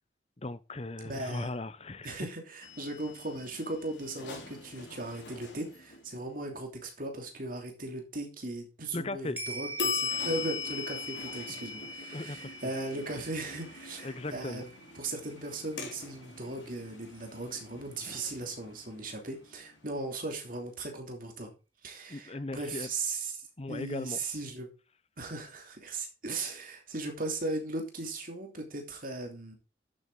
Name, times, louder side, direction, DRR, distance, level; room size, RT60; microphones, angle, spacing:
voice 1, 0.4-2.2 8.9-9.4 11.5-11.6 12.1-12.5 14.0-14.6 22.1-22.9 23.6-24.2, left 2 dB, 30° left, 0.7 m, -37 dB
voice 2, 1.0-1.5 2.0-14.7 14.9-21.5 21.8-23.4 23.7-24.7 25.2-29.5, right 2 dB, 45° right, 3.0 m, -38 dB
sound 1, 2.6-6.3 9.8-20.5, left 5 dB, 65° left, 3.6 m, -41 dB
sound 2, 9.4-17.9 18.3-18.4, right 3 dB, 10° right, 2.5 m, -45 dB
11.5 x 7.9 x 3.9 m
head